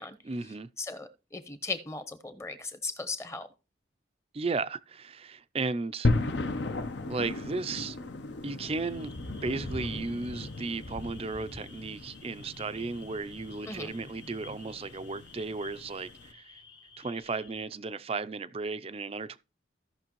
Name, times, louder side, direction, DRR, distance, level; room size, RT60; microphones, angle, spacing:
voice 1, 0.2-0.7 4.3-6.1 7.1-8.0 8.4-9.2 9.4-16.6 17.0-19.4, right 3 dB, 30° right, 0.4 m, -35 dB
voice 2, 0.8-3.5 13.7-13.9, left 3 dB, 15° left, 0.8 m, -37 dB
sound 1, 6.0-16.3, left 2 dB, 65° left, 0.9 m, -36 dB
sound 2, 8.7-17.7, left 1 dB, 50° left, 2.3 m, -48 dB
16.0 x 5.9 x 3.1 m
head